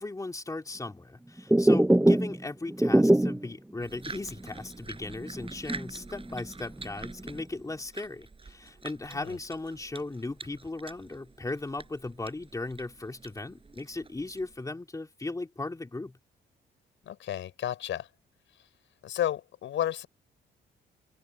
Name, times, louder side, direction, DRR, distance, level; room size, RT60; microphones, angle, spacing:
voice 1, 0.0-16.2, left 2 dB, 15° left, 3.4 m, -37 dB
sound 1, 1.4-3.5 3.9-4.0 4.4-4.5 5.0-6.4 6.8-7.4, right 1 dB, 5° right, 0.9 m, -23 dB
sound 2, 3.8-14.7, right 4 dB, 25° right, 7.7 m, -47 dB
voice 2, 17.0-18.1 19.0-20.1, left 11 dB, 75° left, 6.1 m, -32 dB
open air
cardioid pair, 90°, 20 cm